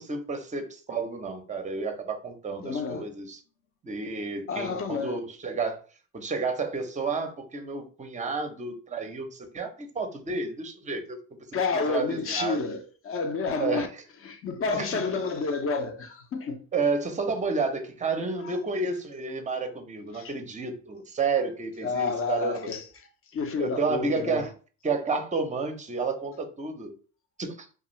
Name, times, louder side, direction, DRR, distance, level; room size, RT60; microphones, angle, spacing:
voice 1, 0.0-3.4 3.8-5.8 6.1-11.2 11.9-12.6 13.6-13.9 14.7-15.0 16.7-22.6 23.6-24.5 24.8-26.9 27.4-27.7, right 4 dB, 20° right, 0.6 m, -30 dB
voice 2, 2.6-3.1 4.5-5.2 11.5-13.9 14.2-16.7 18.4-18.6 20.1-20.3 21.8-24.5, left 4 dB, 35° left, 0.5 m, -30 dB
2.4 x 2.3 x 3.0 m
supercardioid pair, 75°, 40 cm